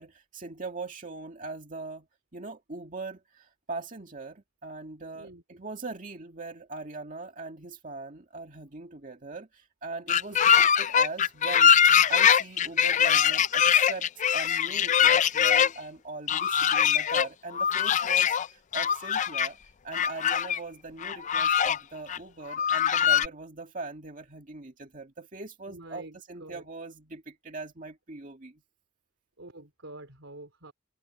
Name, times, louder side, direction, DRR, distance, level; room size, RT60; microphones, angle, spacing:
voice 1, 0.0-2.1 2.3-28.6, right 3 dB, 40° right, 2.1 m, -41 dB
sound 1, 10.1-15.7 16.3-17.3 17.5-18.5 18.7-19.5 19.9-20.6 21.0-21.8 22.1-22.2 22.5-23.3, left 8 dB, 35° left, 0.4 m, -22 dB
voice 2, 25.7-26.7 29.4-30.7, right 2 dB, 75° right, 4.1 m, -47 dB
head